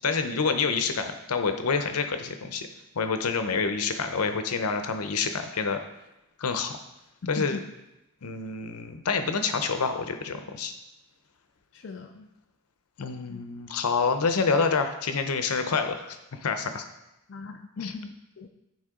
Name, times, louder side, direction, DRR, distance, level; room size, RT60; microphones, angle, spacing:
voice 1, 0.0-2.7 2.9-5.8 6.4-6.8 7.3-7.6 8.2-10.7 13.0-16.2 16.4-16.8 17.8-17.9, left 5 dB, 85° left, 7 dB, 0.7 m, -27 dB
voice 2, 7.2-7.6 11.7-12.3 13.3-13.4 17.3-18.5, left 4 dB, 55° left, 4 dB, 0.4 m, -38 dB
9.5 x 4.4 x 3.7 m, 0.94 s
head